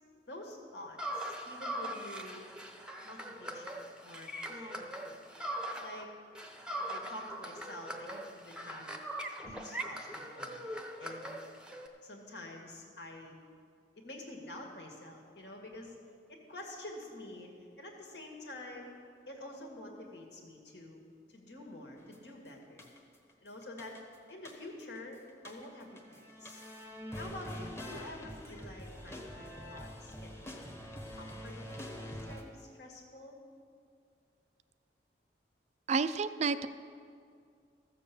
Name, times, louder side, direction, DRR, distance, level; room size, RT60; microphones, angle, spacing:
voice 1, 0.3-2.5 3.0-5.2 5.8-6.1 6.9-8.9 9.4-10.6 11.0-11.3 12.0-13.4 14.0-16.0 16.3-17.5 17.8-18.9 19.3-21.0 21.3-22.9 23.4-23.9 24.3-26.6 27.1-30.8 31.1-33.4, left 1 dB, 70° left, 1 dB, 2.1 m, -48 dB
sound 1, 1.0-6.0 6.3-11.9, right 1 dB, 5° right, 0.8 m, -41 dB
sound 2, 22.1-22.3 22.8-23.3 23.6-25.0 25.3-32.4, equal, 15° left, 1.2 m, -45 dB
voice 2, 35.9-36.7, right 5 dB, 40° right, 13 dB, 0.3 m, -30 dB
14.0 x 7.3 x 7.0 m, 2.3 s
head